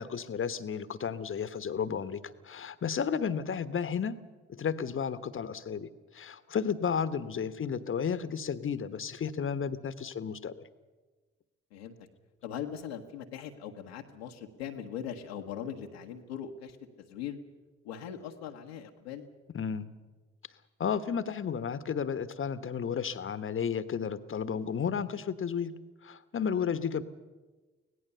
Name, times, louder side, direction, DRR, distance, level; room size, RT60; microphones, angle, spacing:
voice 1, 0.0-4.2 4.5-10.7 19.5-19.9 20.8-25.7 26.0-27.0, left 7 dB, 40° left, 14 dB, 1.3 m, -33 dB
voice 2, 12.4-17.4 17.8-19.3 26.6-26.7, left 9 dB, 80° left, 2 dB, 1.3 m, -40 dB
24.5 x 17.5 x 6.9 m, 1.3 s
figure-of-eight pair, 40°, 31 cm